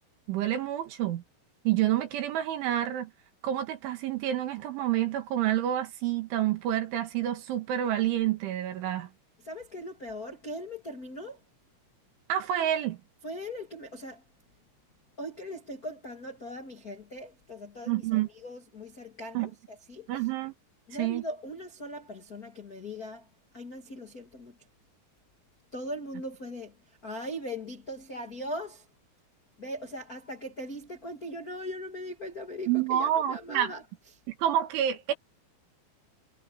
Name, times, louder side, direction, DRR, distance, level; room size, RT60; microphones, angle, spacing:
voice 1, 0.3-1.2 1.7-3.1 3.4-9.1 12.3-13.0 17.9-18.3 19.3-19.5 20.1-20.5 21.0-21.2 32.7-33.7 34.4-35.1, right 12 dB, 80° right, 4.5 m, -28 dB
voice 2, 9.4-11.4 13.2-14.2 15.2-20.3 20.9-23.3 23.5-24.6 25.7-28.9 29.6-33.8, equal, 45° left, 1.1 m, -40 dB
omnidirectional pair, 5.4 m